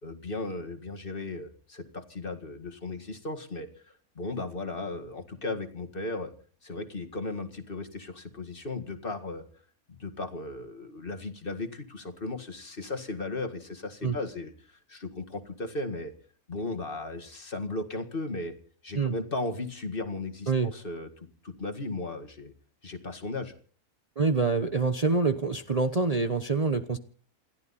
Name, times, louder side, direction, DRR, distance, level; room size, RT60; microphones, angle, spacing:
voice 1, 0.0-6.3 6.6-9.4 9.9-16.1 16.5-18.6 18.8-22.5 22.8-23.5, left 2 dB, 40° left, 6 dB, 2.0 m, -36 dB
voice 2, 24.2-27.0, right 4 dB, 30° right, 8 dB, 0.9 m, -26 dB
29.0 x 12.0 x 4.2 m, 0.42 s
omnidirectional pair, 1.5 m